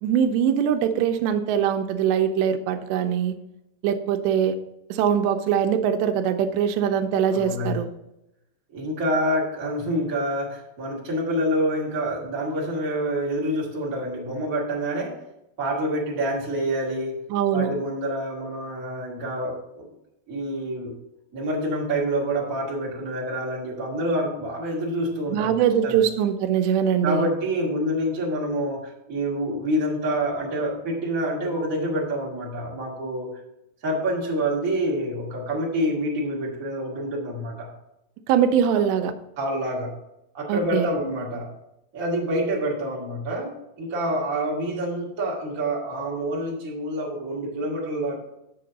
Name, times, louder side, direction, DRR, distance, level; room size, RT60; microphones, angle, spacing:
voice 1, 0.0-3.4 3.8-4.6 4.9-7.9 17.3-17.7 25.3-27.3 38.3-39.1 40.5-40.9, right 8 dB, 90° right, 8 dB, 2.8 m, -22 dB
voice 2, 7.3-7.8 8.7-15.1 15.6-17.2 17.5-19.9 20.3-20.9 21.3-25.5 25.8-26.0 27.0-33.3 33.8-37.7 38.7-38.8 39.4-39.9 40.3-41.5 41.9-48.2, right 1 dB, 35° right, -4 dB, 1.3 m, -27 dB
7.6 x 7.1 x 3.9 m, 0.86 s
omnidirectional pair, 4.9 m